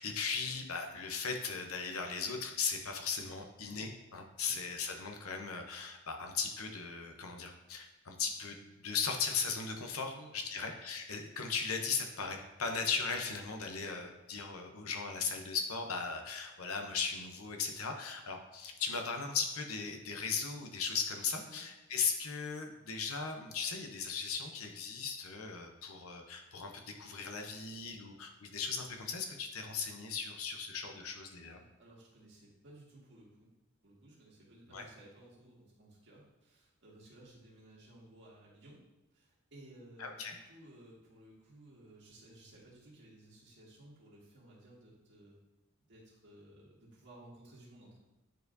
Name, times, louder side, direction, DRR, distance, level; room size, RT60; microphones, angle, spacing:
voice 1, 0.0-31.6 34.7-34.8 40.0-40.3, left 5 dB, 85° left, 4 dB, 0.9 m, -37 dB
voice 2, 10.1-10.7 21.4-21.6 31.6-33.5 33.8-38.8 39.1-45.4 45.9-48.0, right 1 dB, 55° right, -4 dB, 1.9 m, -57 dB
9.4 x 4.4 x 2.7 m, 1.0 s
head